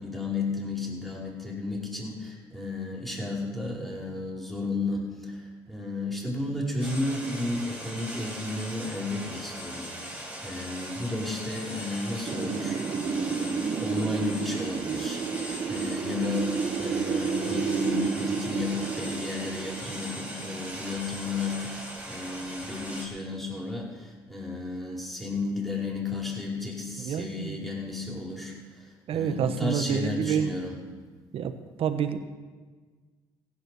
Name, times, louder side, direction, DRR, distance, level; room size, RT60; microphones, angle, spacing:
voice 1, 0.0-30.8, left 2 dB, ahead, -4 dB, 5.0 m, -33 dB
sound 1, 6.8-23.1, equal, 15° right, 4.7 m, -39 dB
Wind, 12.3-21.0, right 6 dB, 45° right, 0.9 m, -31 dB
voice 2, 27.0-27.6 29.1-30.5 31.3-32.2, right 8 dB, 65° right, 10 dB, 1.2 m, -28 dB
15.5 x 10.0 x 6.9 m, 1.4 s
supercardioid pair, 80°, 11 cm